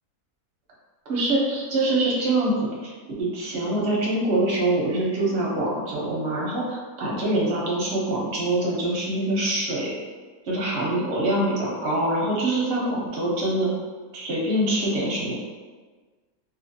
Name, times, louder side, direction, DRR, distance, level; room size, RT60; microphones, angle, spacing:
voice 1, 1.1-2.9 3.2-9.9 10.5-13.7 14.1-15.4, right 1 dB, 55° right, -4 dB, 0.8 m, -24 dB
2.7 x 2.4 x 2.6 m, 1.4 s
omnidirectional pair, 1.6 m